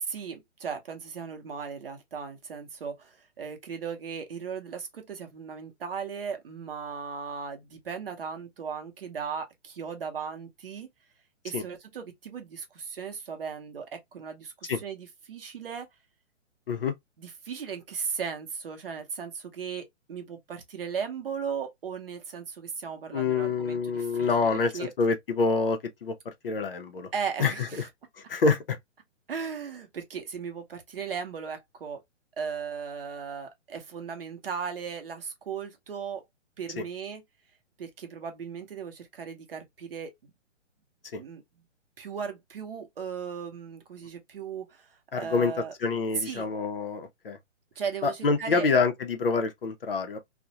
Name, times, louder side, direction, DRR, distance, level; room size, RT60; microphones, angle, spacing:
voice 1, 0.1-10.9 11.4-15.9 17.2-24.9 27.1-27.9 29.3-32.0 32.4-36.2 36.6-37.2 37.8-40.3 41.1-41.4 42.0-44.9 45.1-45.7 46.2-46.5 47.8-48.7, right 6 dB, 50° right, 0.8 m, -37 dB
voice 2, 23.1-26.1 26.4-27.1 27.4-27.5 28.3-28.8 36.8-36.9 41.1-41.2 45.1-45.5 45.8-47.4 48.0-50.2, left 4 dB, 50° left, 0.5 m, -26 dB
2.4 x 2.1 x 2.7 m
hypercardioid pair, 170°, 37 cm